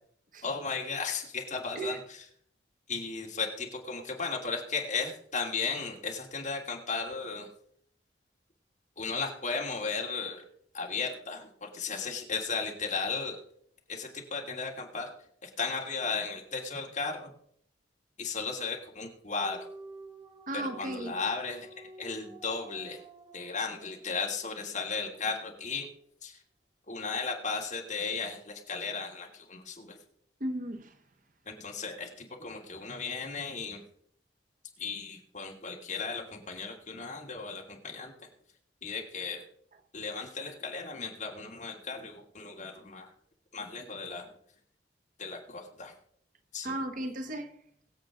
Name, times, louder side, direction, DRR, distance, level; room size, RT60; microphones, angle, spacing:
voice 1, 0.4-2.2 2.9-7.5 9.0-10.4 10.7-13.4 13.9-15.1 15.4-17.3 18.2-19.6 20.5-23.0 23.3-25.9 26.2-26.4 26.9-30.0 31.4-33.8 34.8-38.1 38.8-39.4 39.9-43.1 43.5-44.3 45.2-45.9 46.5-46.8, left 4 dB, 45° left, 2.9 m, -35 dB
sound 1, 19.4-24.7, right 2 dB, 25° right, 2.0 m, -50 dB
voice 2, 20.5-21.2 30.4-31.0 46.6-47.6, right 1 dB, 50° right, 1.2 m, -35 dB
23.0 x 8.0 x 3.8 m
head